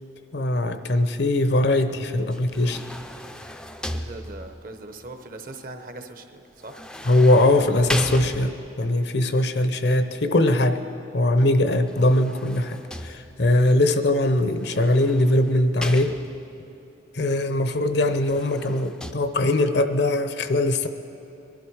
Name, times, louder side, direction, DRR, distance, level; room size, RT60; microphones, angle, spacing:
voice 1, 0.3-2.8 7.1-10.8 11.1-16.2 17.1-20.9, left 1 dB, 60° left, 9 dB, 0.7 m, -21 dB
sound 1, 2.3-4.7 6.6-8.9 11.7-13.6 14.6-16.6 17.9-19.1, equal, 5° left, 0.4 m, -35 dB
voice 2, 3.9-6.8, right 2 dB, 45° right, 7 dB, 0.9 m, -40 dB
22.0 x 11.5 x 4.7 m, 3.0 s
head